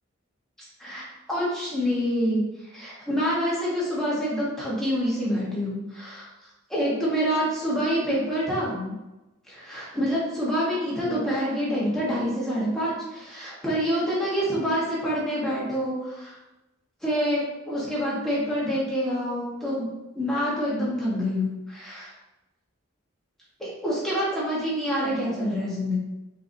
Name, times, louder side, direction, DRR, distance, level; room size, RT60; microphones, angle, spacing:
voice 1, 0.8-2.4 2.7-6.3 6.7-8.9 9.5-16.4 17.0-19.9 20.1-22.1 23.6-26.0, equal, ahead, -7 dB, 1.3 m, -27 dB
4.5 x 3.8 x 2.7 m, 1.0 s
head